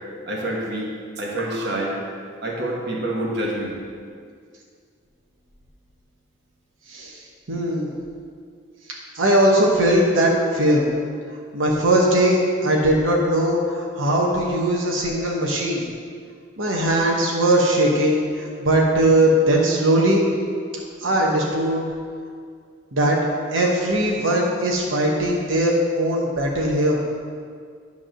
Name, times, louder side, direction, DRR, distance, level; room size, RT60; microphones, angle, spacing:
voice 1, 0.3-2.0 2.4-3.8, right 1 dB, 60° right, -2 dB, 1.4 m, -27 dB
voice 2, 6.9-7.2 7.5-7.9 9.1-10.9 11.5-15.8 16.6-20.3 21.0-21.9 22.9-23.2 23.5-27.0, right 1 dB, 90° right, -2 dB, 1.1 m, -19 dB
10.5 x 3.6 x 6.3 m, 2.1 s
head